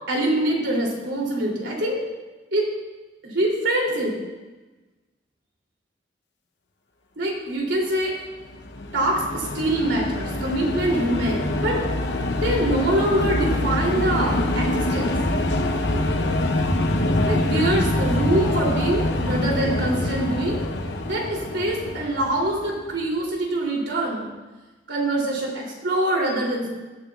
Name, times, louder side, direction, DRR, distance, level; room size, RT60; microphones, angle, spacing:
voice 1, 0.1-2.0 2.5-2.7 3.2-4.2 7.2-8.1 8.9-11.8 12.4-15.1 17.2-20.6 21.0-24.3 24.9-26.7, right 1 dB, 90° right, -2 dB, 3.2 m, -24 dB
sound 1, 8.4-22.9, left 1 dB, 75° left, 0.8 m, -25 dB
18.0 x 9.8 x 2.4 m, 1.2 s
head